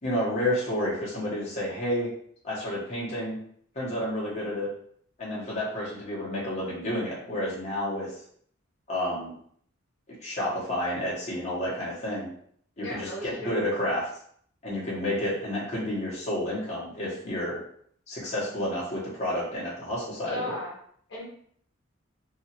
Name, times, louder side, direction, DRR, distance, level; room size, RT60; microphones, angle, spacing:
voice 1, 0.0-2.1 2.4-3.4 3.7-4.7 5.2-8.1 8.9-9.3 10.2-12.3 12.8-14.1 14.6-17.6 18.1-20.6, left 1 dB, 35° left, -6 dB, 0.9 m, -30 dB
voice 2, 12.8-13.5 20.2-20.7 21.1-21.2, left 1 dB, 60° left, -5 dB, 0.9 m, -36 dB
2.8 x 2.4 x 2.8 m, 0.62 s
head